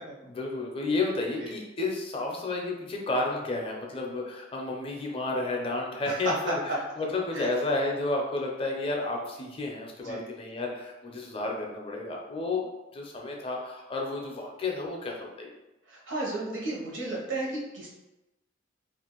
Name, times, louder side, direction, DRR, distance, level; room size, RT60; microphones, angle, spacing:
voice 1, 0.2-15.5, left 2 dB, 30° left, -1 dB, 0.5 m, -31 dB
voice 2, 15.9-17.9, right 2 dB, 75° right, -4 dB, 0.9 m, -33 dB
2.5 x 2.5 x 2.9 m, 0.99 s
head